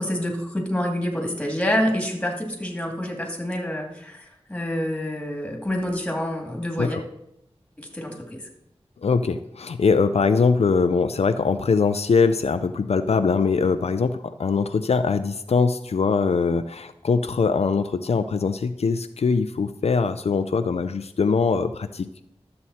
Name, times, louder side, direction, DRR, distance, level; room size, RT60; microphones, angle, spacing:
voice 1, 0.0-7.0 7.8-8.4, equal, 10° left, 1 dB, 2.5 m, -27 dB
voice 2, 9.0-22.2, left 5 dB, 75° left, 9 dB, 0.4 m, -22 dB
12.5 x 7.6 x 4.2 m, 0.79 s
wide cardioid pair, 65°, 11 cm